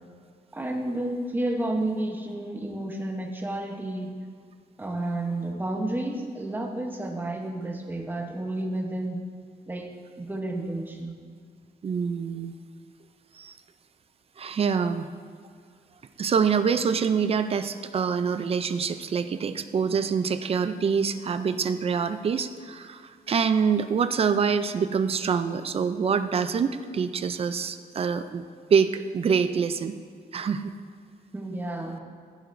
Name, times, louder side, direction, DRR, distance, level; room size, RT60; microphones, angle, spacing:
voice 1, 0.5-4.1 4.8-9.2 9.7-11.2 31.3-32.0, right 1 dB, 10° right, 1 dB, 0.9 m, -31 dB
voice 2, 11.8-12.5 13.4-13.5 14.4-15.1 16.2-28.4 28.7-29.9 30.3-30.7, right 6 dB, 35° right, 10 dB, 0.4 m, -25 dB
15.5 x 7.9 x 2.6 m, 2.2 s
wide cardioid pair, 165°, 17 cm